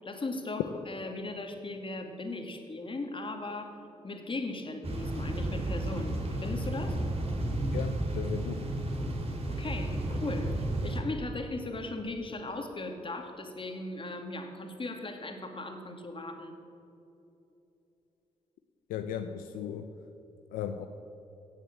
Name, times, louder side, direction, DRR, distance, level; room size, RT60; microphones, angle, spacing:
voice 1, 0.0-7.0 9.5-16.5, left 2 dB, 40° left, 4 dB, 2.3 m, -38 dB
sound 1, 4.8-11.0, right 1 dB, 45° right, 2.6 m, -32 dB
voice 2, 7.7-8.7 18.9-19.9 20.5-20.9, left 9 dB, 85° left, 7 dB, 0.6 m, -36 dB
17.5 x 7.5 x 7.5 m, 2.9 s
supercardioid pair, 45°, 14 cm